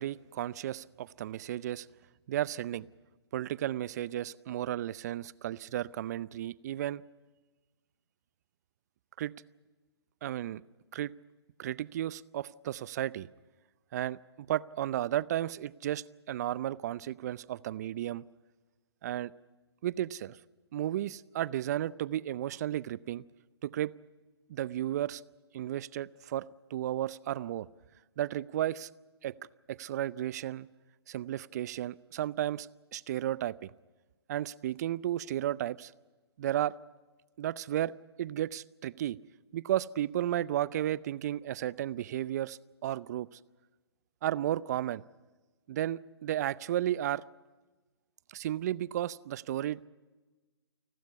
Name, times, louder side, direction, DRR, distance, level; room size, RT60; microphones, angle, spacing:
voice 1, 0.0-1.9 2.3-2.9 3.3-7.0 9.2-9.3 10.2-10.6 10.9-11.1 11.6-13.3 13.9-18.2 19.0-19.3 19.8-20.4 20.7-23.2 23.6-23.9 24.5-25.2 25.5-26.4 26.7-27.7 28.2-28.9 29.2-29.3 29.7-30.7 31.1-33.7 34.3-35.9 36.4-36.7 37.4-37.9 38.2-39.2 39.5-43.3 44.2-45.0 45.7-47.2 48.3-49.9, right 12 dB, 40° right, 21 dB, 0.6 m, -33 dB
29.5 x 12.5 x 9.5 m, 1.3 s
hypercardioid pair, 145°, 14 cm